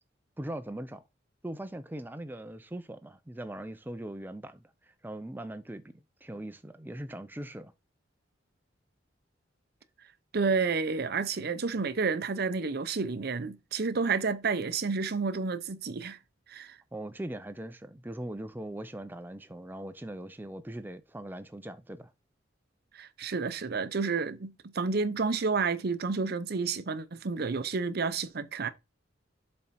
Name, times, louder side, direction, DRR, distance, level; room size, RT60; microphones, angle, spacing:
voice 1, 0.4-1.0 1.4-7.7 16.9-22.1, right 1 dB, 10° right, 0.5 m, -40 dB
voice 2, 10.3-16.2 16.5-16.8 22.9-28.7, right 4 dB, 55° right, 0.6 m, -30 dB
7.4 x 4.3 x 4.1 m
head